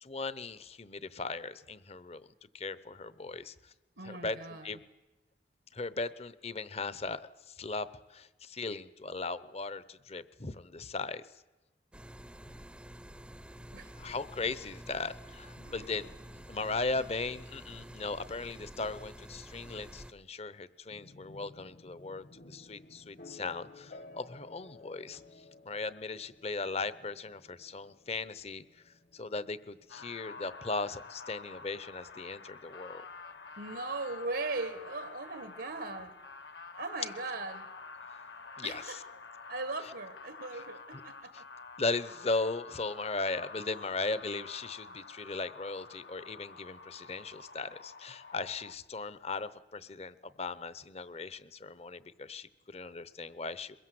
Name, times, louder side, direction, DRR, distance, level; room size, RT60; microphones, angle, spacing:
voice 1, 0.0-2.3 2.5-3.5 4.0-4.4 4.6-4.8 5.7-7.2 7.5-11.2 14.0-25.2 25.6-28.6 29.1-33.0 38.6-39.0 41.8-53.8, left 3 dB, 35° left, 15 dB, 0.9 m, -37 dB
voice 2, 4.0-4.8 10.7-10.8 13.7-14.1 15.6-16.1 33.6-36.2 36.8-37.7 38.6-39.2 39.5-41.3 43.6-44.1, right 3 dB, 80° right, 9 dB, 1.6 m, -39 dB
sound 1, 11.9-20.1, equal, 5° right, 0.7 m, -49 dB
sound 2, 20.9-34.7, left 2 dB, 55° left, 1.4 m, -56 dB
sound 3, 29.9-48.8, left 4 dB, 70° left, 1.1 m, -49 dB
23.0 x 21.5 x 7.8 m, 1.1 s
head